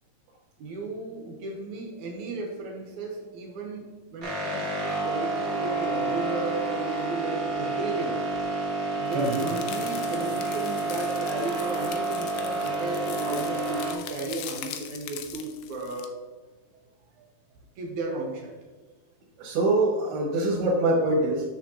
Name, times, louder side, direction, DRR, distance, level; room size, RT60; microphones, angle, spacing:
voice 1, 0.6-8.2 8.9-16.2 17.8-18.5 20.5-20.6, right 3 dB, 70° right, 0 dB, 1.9 m, -34 dB
sound 1, 4.2-13.9, right 2 dB, 45° right, 1.1 m, -29 dB
sound 2, 9.1-16.1, left 10 dB, 80° left, 2.6 m, -41 dB
voice 2, 19.4-21.4, right 2 dB, 90° right, -4 dB, 3.1 m, -24 dB
7.2 x 7.0 x 2.9 m, 1.3 s
omnidirectional pair, 4.5 m